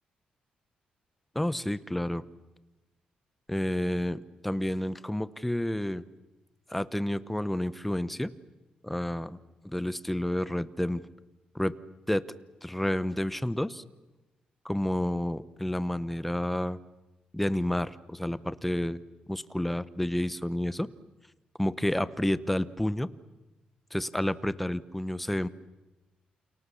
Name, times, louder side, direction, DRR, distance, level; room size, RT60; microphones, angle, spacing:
voice 1, 1.3-2.2 3.5-6.0 6.7-8.3 8.8-9.4 9.6-11.0 11.5-11.7 12.1-12.2 12.6-13.8 14.6-16.8 17.3-19.0 19.3-20.9 21.6-23.1 23.9-25.5, left 1 dB, 5° left, 16 dB, 0.9 m, -30 dB
30.0 x 28.5 x 7.0 m, 1.1 s
wide cardioid pair, 155°, 3 cm